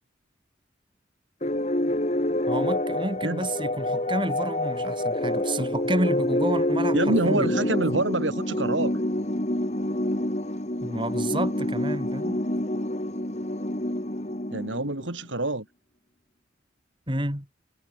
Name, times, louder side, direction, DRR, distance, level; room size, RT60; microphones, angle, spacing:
sound 1, 1.4-15.1, left 1 dB, 35° left, 2.1 m, -27 dB
voice 1, 2.5-7.5 10.8-12.4 17.1-17.5, right 1 dB, 25° right, 7.6 m, -30 dB
voice 2, 6.9-9.0 14.5-15.7, right 2 dB, 90° right, 4.0 m, -26 dB
head